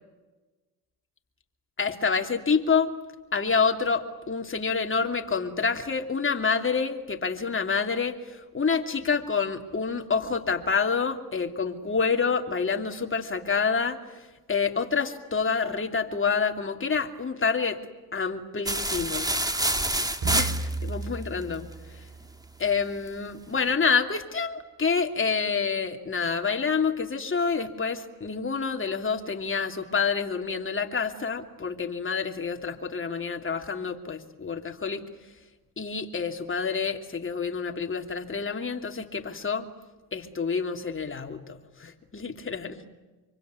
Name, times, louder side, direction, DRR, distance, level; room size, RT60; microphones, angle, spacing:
voice 1, 1.8-2.9 3.3-14.0 14.5-17.8 18.1-19.3 20.2-21.7 22.6-35.0 35.8-39.7 40.1-42.8, left 5 dB, 25° left, 4 dB, 3.0 m, -28 dB
sound 1, 18.7-21.0, right 1 dB, 10° right, 2.1 m, -27 dB
sound 2, 20.2-23.0, right 4 dB, 45° right, 7.0 m, -34 dB
25.0 x 24.5 x 9.7 m, 1.2 s
supercardioid pair, 75°, 49 cm